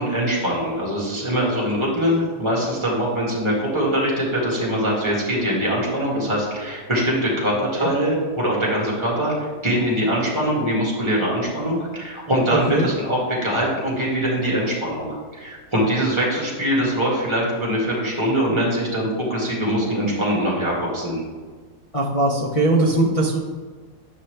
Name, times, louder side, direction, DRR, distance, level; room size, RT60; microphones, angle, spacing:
voice 1, 0.0-21.2, equal, 15° right, -4 dB, 1.9 m, -23 dB
voice 2, 21.9-23.4, right 2 dB, 45° left, -5 dB, 0.4 m, -20 dB
8.0 x 5.6 x 3.3 m, 1.4 s
omnidirectional pair, 1.7 m